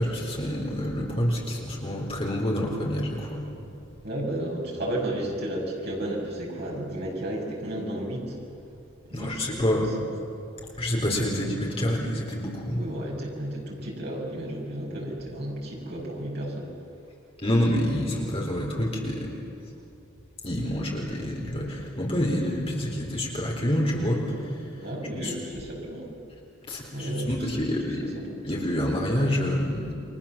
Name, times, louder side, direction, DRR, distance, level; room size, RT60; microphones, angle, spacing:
voice 1, 0.0-3.5 9.1-9.9 10.8-12.8 17.4-19.3 20.4-24.6 25.1-25.3 26.7-28.1 28.4-29.9, equal, 25° left, -1 dB, 4.0 m, -27 dB
voice 2, 4.0-8.4 9.0-9.8 12.7-16.7 20.6-20.7 24.8-26.1 26.9-27.5 28.1-28.2, right 1 dB, 45° right, -2 dB, 6.5 m, -33 dB
29.5 x 23.5 x 7.4 m, 2.6 s
head